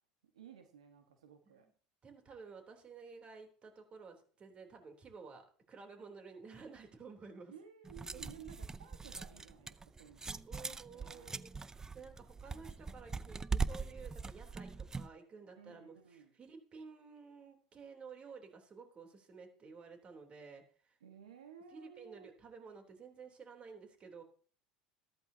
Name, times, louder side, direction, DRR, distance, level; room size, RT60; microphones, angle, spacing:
voice 1, 0.3-1.7 7.5-11.4 15.5-16.3 21.0-22.3, right 7 dB, 90° right, 5 dB, 1.5 m, -56 dB
voice 2, 2.0-7.5 8.1-8.2 10.5-21.0 21.7-24.2, right 5 dB, 35° right, 4 dB, 3.4 m, -53 dB
sound 1, 7.8-15.1, right 4 dB, 15° right, 0.6 m, -41 dB
14.0 x 13.0 x 2.8 m, 0.43 s
hypercardioid pair, 80°, 3 cm